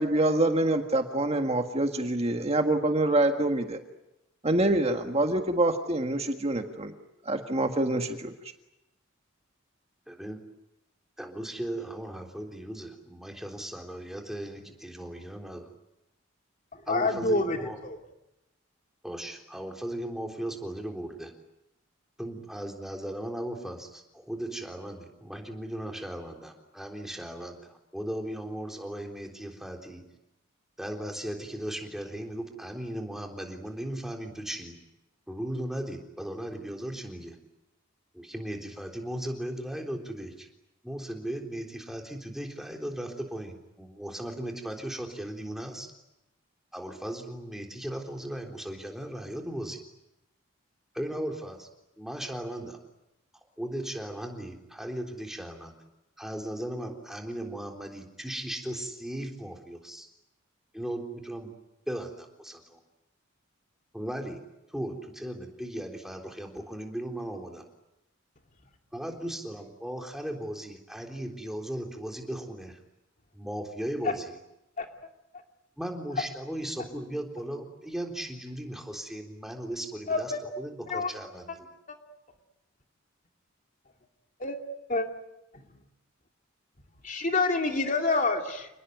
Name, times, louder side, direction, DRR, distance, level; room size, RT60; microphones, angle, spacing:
voice 1, 0.0-3.8 4.4-6.9 7.2-8.3, right 1 dB, 30° right, 5 dB, 1.7 m, -26 dB
voice 2, 10.1-10.4 11.2-15.7 16.9-17.8 19.0-21.3 22.2-30.1 30.8-34.7 35.3-37.4 38.1-40.5 40.8-45.9 46.7-49.8 50.9-51.7 52.0-52.8 53.6-55.7 56.2-60.1 60.7-61.5 61.9-62.8 63.9-64.4 64.7-67.6 68.9-72.8 73.3-74.4 75.8-81.7, right 1 dB, ahead, 2 dB, 3.7 m, -37 dB
voice 3, 16.9-17.6 17.8-18.0 74.0-74.1 74.8-74.9 80.1-80.4 80.9-81.1 84.4-84.6 84.9-85.1 87.0-88.7, left 3 dB, 40° left, 4 dB, 2.7 m, -27 dB
29.0 x 20.5 x 9.4 m, 0.91 s
head